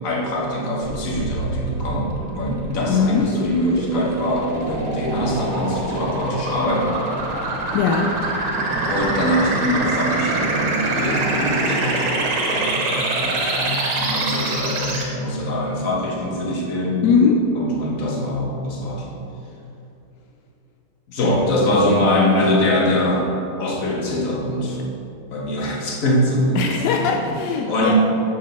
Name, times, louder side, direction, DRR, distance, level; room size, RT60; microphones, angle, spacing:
voice 1, 0.0-2.1 2.3-7.0 8.9-12.2 12.5-17.0 17.6-19.2 21.1-23.3 23.6-24.8 25.3-27.2 27.6-27.9, left 1 dB, 45° left, -2 dB, 1.4 m, -23 dB
sound 1, 0.8-15.0, right 2 dB, 80° right, 2.0 m, -25 dB
voice 2, 2.9-3.2 7.7-8.1 17.0-17.3 26.6-27.9, left 6 dB, 80° left, 1 dB, 1.0 m, -19 dB
5.9 x 5.7 x 6.4 m, 2.8 s
omnidirectional pair, 2.3 m